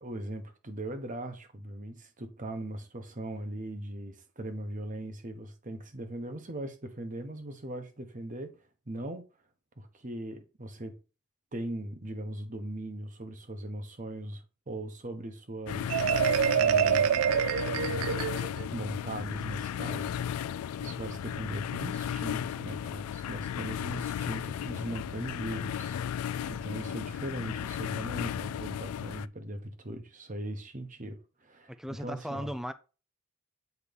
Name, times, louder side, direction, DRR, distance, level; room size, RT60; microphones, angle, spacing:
voice 1, 0.0-8.5 8.9-9.2 9.8-11.0 11.5-16.0 16.5-17.2 17.7-20.5 20.8-26.0 26.5-31.7 32.0-32.5, right 1 dB, 35° right, 1.1 m, -39 dB
sound 1, 15.7-29.3, left 9 dB, 90° left, 0.3 m, -35 dB
Marimba xylophone, 15.9-18.7, right 8 dB, 80° right, 0.3 m, -26 dB
voice 2, 31.7-32.7, equal, ahead, 0.5 m, -37 dB
8.3 x 3.1 x 5.3 m
head